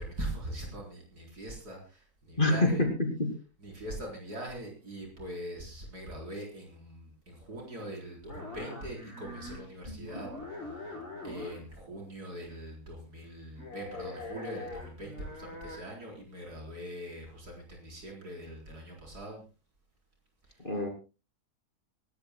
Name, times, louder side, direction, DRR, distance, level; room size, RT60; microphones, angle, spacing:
voice 1, 0.0-2.8 3.6-10.3 10.7-10.8 11.2-19.4, right 1 dB, 70° right, 0 dB, 4.8 m, -42 dB
voice 2, 2.4-3.3 9.9-10.0 20.6-20.9, left 2 dB, 30° left, 3 dB, 2.9 m, -26 dB
sound 1, 8.3-9.7 10.0-11.7 13.6-15.8, left 2 dB, 50° left, 7.7 m, -43 dB
25.5 x 13.5 x 2.2 m, 0.30 s
omnidirectional pair, 1.7 m